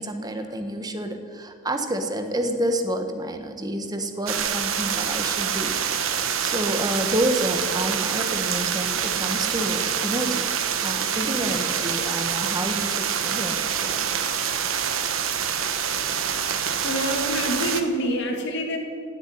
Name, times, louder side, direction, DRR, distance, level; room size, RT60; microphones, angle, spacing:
voice 1, 0.0-5.8 6.4-10.4 10.8-14.0, right 1 dB, 20° right, 6 dB, 1.4 m, -29 dB
sound 1, 4.3-17.8, right 8 dB, 85° right, 1.3 m, -26 dB
voice 2, 15.8-18.8, equal, 60° left, 2 dB, 2.8 m, -31 dB
17.0 x 8.3 x 10.0 m, 2.4 s
head